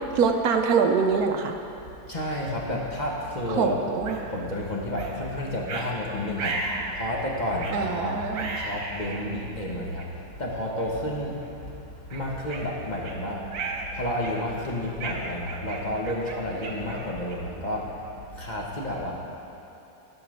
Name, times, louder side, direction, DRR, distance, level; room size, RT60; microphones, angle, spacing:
voice 1, 0.1-1.5 3.5-4.2 7.7-8.6, right 5 dB, 65° right, 4 dB, 1.1 m, -24 dB
voice 2, 2.0-3.8 4.1-19.1, left 1 dB, 30° left, -3 dB, 1.1 m, -31 dB
sound 1, 4.1-4.2 5.0-5.1 5.7-5.9 6.4-7.0 7.6-7.8 8.3-9.2 10.0-10.1 10.8-11.0 11.4-11.6 12.1-13.2 13.5-13.9 14.2-14.6 15.0-17.6, right 3 dB, 85° right, 1.7 m, -34 dB
12.0 x 5.5 x 6.5 m, 2.8 s
omnidirectional pair, 1.8 m